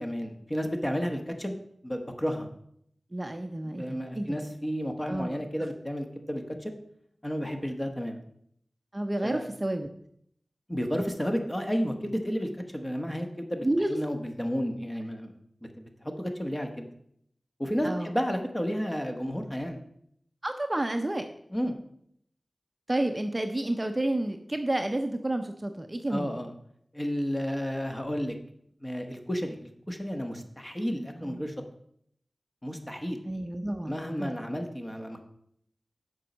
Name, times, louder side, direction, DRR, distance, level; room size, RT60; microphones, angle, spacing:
voice 1, 0.0-1.5 1.8-2.5 3.7-6.7 7.2-8.2 9.2-9.5 10.7-15.3 15.8-16.9 17.6-19.8 21.5-21.7 26.1-26.5 26.9-28.3 28.8-29.6 29.9-31.5 32.6-33.2 33.9-35.2, equal, 15° left, 4 dB, 1.3 m, -32 dB
voice 2, 3.1-4.4 5.0-5.4 8.9-9.9 13.6-14.0 17.8-18.1 20.4-21.3 22.9-26.3 31.2-31.5 33.3-34.4, right 1 dB, 25° right, 6 dB, 0.6 m, -30 dB
7.5 x 5.3 x 6.2 m, 0.70 s
wide cardioid pair, 75°, 0 cm